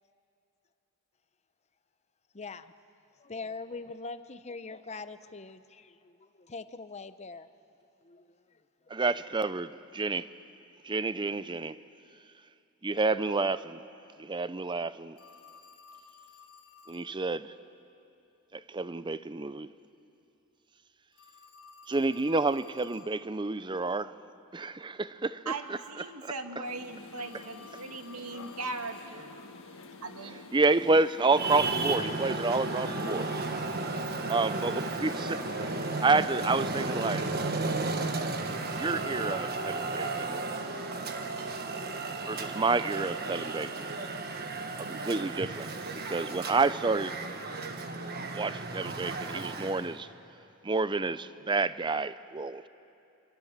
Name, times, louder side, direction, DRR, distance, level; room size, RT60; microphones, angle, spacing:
voice 1, 2.3-2.7 3.2-7.5 8.0-8.3, left 3 dB, 30° left, 0.7 m, -42 dB
voice 2, 8.9-10.3 10.8-11.8 12.8-13.8 14.2-15.2 16.9-17.5 18.5-19.7 21.9-24.1 24.5-25.8 26.2-26.3 27.3-27.4 30.5-33.3 34.3-37.2 38.7-40.4 42.3-44.0 44.8-45.7 46.0-47.2 48.3-50.1 50.6-52.7, right 3 dB, 20° right, 0.5 m, -29 dB
Telephone, 15.2-17.1 21.1-23.2 27.2-29.2, left 5 dB, 85° left, 2.6 m, -54 dB
voice 3, 25.5-29.4 30.0-30.4, right 3 dB, 90° right, 1.7 m, -39 dB
sound 1, 26.6-37.5, left 3 dB, 60° left, 1.8 m, -48 dB
Traffic noise roadway noise, 31.3-50.0, right 3 dB, 45° right, 1.5 m, -34 dB
27.5 x 25.0 x 7.4 m
head